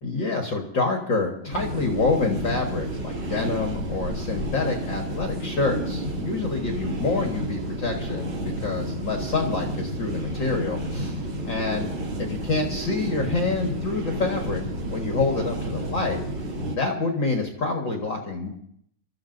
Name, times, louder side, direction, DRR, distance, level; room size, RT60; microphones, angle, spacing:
voice 1, 0.0-11.2 11.4-11.9 12.2-14.6 14.9-16.2 16.8-18.5, left 3 dB, 45° left, 1 dB, 1.5 m, -27 dB
sound 1, 1.5-16.8, right 1 dB, 35° right, 3.0 m, -31 dB
29.0 x 14.0 x 2.6 m, 0.69 s
omnidirectional pair, 4.1 m